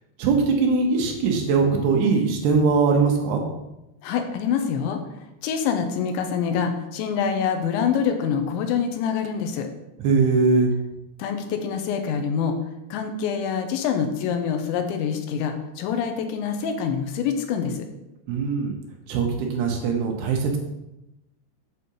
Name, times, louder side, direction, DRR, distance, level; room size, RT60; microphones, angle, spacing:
voice 1, 0.2-3.4 10.0-10.7 18.3-18.8 19.1-20.6, right 4 dB, 70° right, 1 dB, 2.9 m, -21 dB
voice 2, 4.0-9.7 11.2-12.6 12.9-17.8, left 7 dB, 85° left, 6 dB, 3.2 m, -26 dB
8.3 x 4.3 x 6.8 m, 0.92 s
omnidirectional pair, 5.3 m